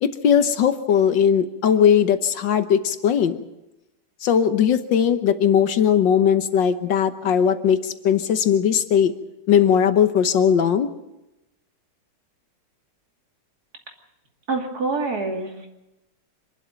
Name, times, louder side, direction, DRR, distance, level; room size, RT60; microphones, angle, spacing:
voice 1, 0.0-3.4 4.2-9.1 9.5-10.9, left 8 dB, 80° left, 10 dB, 1.7 m, -19 dB
voice 2, 14.5-15.7, right 3 dB, 55° right, 2 dB, 3.2 m, -26 dB
25.5 x 12.0 x 8.9 m, 0.93 s
omnidirectional pair, 2.0 m